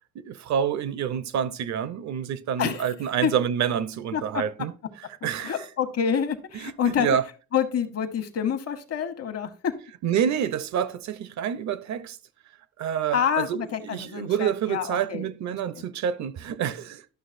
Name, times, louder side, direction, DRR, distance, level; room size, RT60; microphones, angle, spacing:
voice 1, 0.1-4.7 5.2-5.6 6.5-7.2 10.0-12.2 12.8-17.0, right 8 dB, 65° right, 0.7 m, -28 dB
voice 2, 2.6-2.9 3.2-3.3 4.1-4.2 5.4-7.1 7.5-9.8 13.1-15.3 15.7-15.8, left 8 dB, 55° left, 1.1 m, -27 dB
11.5 x 6.1 x 2.5 m
cardioid pair, 90°, 30 cm